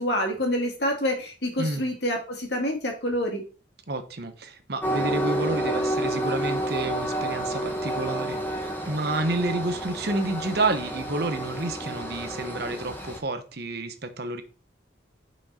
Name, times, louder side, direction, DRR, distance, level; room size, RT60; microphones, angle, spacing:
voice 1, 0.0-3.4, equal, 60° left, 2.2 m, -27 dB
voice 2, 3.9-14.4, right 2 dB, 55° right, 1.0 m, -30 dB
Train, 4.8-13.2, right 1 dB, 10° left, 1.3 m, -30 dB
6.2 x 5.3 x 4.3 m
head